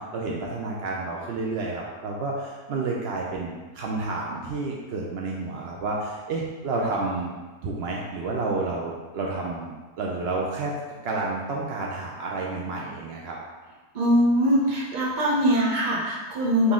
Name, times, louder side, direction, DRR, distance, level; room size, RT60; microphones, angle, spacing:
voice 1, 0.0-7.3 7.6-10.7 11.0-13.4, right 3 dB, 80° right, -2 dB, 0.5 m, -30 dB
voice 2, 13.9-16.7, equal, 45° right, -3 dB, 0.7 m, -22 dB
3.9 x 2.9 x 3.6 m, 1.3 s
omnidirectional pair, 1.6 m